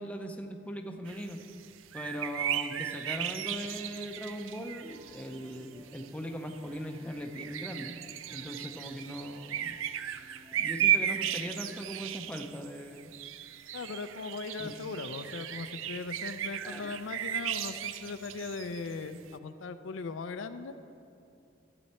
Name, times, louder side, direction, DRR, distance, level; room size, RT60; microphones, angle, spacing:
voice 1, 0.0-1.4 1.9-8.0 8.3-9.8 10.5-13.1 14.6-14.7 16.6-16.9, equal, 5° left, 4 dB, 0.5 m, -40 dB
sound 1, 1.1-5.6 5.9-6.1 6.5-19.3, right 11 dB, 80° right, 0.4 m, -35 dB
Piano, 4.9-11.7, left 1 dB, 40° right, 1.8 m, -58 dB
voice 2, 13.7-20.7, left 4 dB, 80° left, 10 dB, 0.5 m, -39 dB
13.0 x 7.7 x 4.2 m, 2.7 s
head